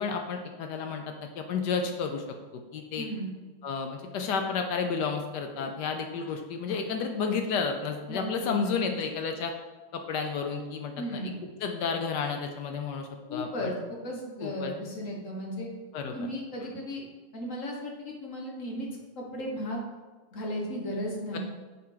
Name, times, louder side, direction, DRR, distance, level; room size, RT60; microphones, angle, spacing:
voice 1, 0.0-2.2 2.5-3.1 3.6-9.5 9.9-13.7 14.4-14.8 15.9-16.3 21.3-21.4, left 5 dB, 75° left, 4 dB, 1.0 m, -32 dB
voice 2, 3.0-3.3 8.1-8.5 8.8-8.9 11.0-11.4 13.3-15.7 16.1-17.0 17.3-18.9 19.2-19.8 20.3-21.4, equal, 45° left, -1 dB, 1.2 m, -35 dB
7.4 x 4.4 x 3.8 m, 1.3 s
omnidirectional pair, 2.3 m